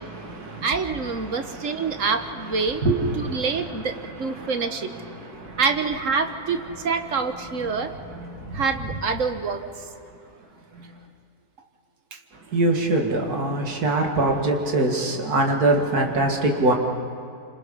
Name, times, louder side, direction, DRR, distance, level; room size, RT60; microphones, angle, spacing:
voice 1, 0.0-5.6 6.7-6.8 7.7-9.0 10.7-10.9 12.3-16.7, right 2 dB, 75° right, 2 dB, 2.5 m, -26 dB
voice 2, 0.6-2.8 3.2-4.9 5.6-7.9 8.5-9.6 12.1-12.2 13.3-13.4, right 5 dB, 55° right, 7 dB, 1.5 m, -26 dB
27.5 x 26.0 x 5.5 m, 2.3 s
omnidirectional pair, 1.7 m